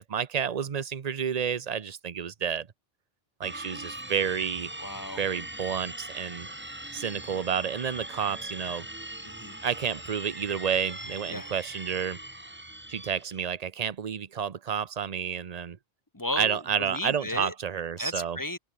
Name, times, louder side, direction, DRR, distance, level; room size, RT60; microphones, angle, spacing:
voice 1, 0.0-2.7 3.4-4.7 5.2-6.5 6.9-8.9 9.6-12.2 12.9-15.8 16.4-18.4, right 7 dB, 45° right, 0.8 m, -30 dB
sound 1, 3.4-13.5, right 1 dB, 10° right, 1.2 m, -41 dB
voice 2, 4.8-5.2 9.2-9.6 11.3-11.5 16.1-17.5 18.0-18.6, left 1 dB, 20° left, 1.1 m, -34 dB
open air
omnidirectional pair, 1.0 m